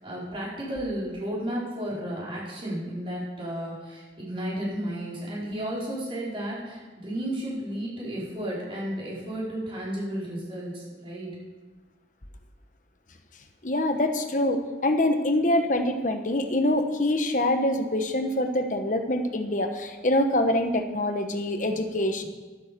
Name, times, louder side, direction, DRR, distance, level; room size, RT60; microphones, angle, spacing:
voice 1, 0.0-11.3, right 1 dB, 30° right, -7 dB, 4.8 m, -33 dB
voice 2, 13.6-22.2, left 1 dB, 45° left, 6 dB, 1.2 m, -25 dB
12.5 x 9.6 x 6.9 m, 1.3 s
head